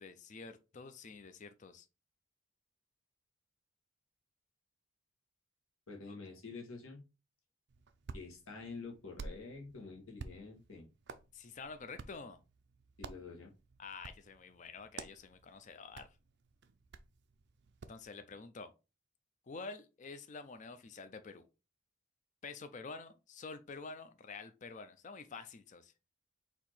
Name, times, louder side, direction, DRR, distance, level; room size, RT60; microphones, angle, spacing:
voice 1, 0.0-1.9 6.1-6.2 11.3-12.4 13.8-16.1 17.9-18.7 19.5-21.5 22.4-25.9, left 4 dB, 35° left, 0.4 m, -48 dB
voice 2, 5.9-7.0 8.1-10.9 13.0-13.5, left 4 dB, 80° left, 1.4 m, -48 dB
Hands, 7.7-18.0, right 4 dB, 50° right, 0.4 m, -52 dB
4.3 x 2.8 x 4.4 m
head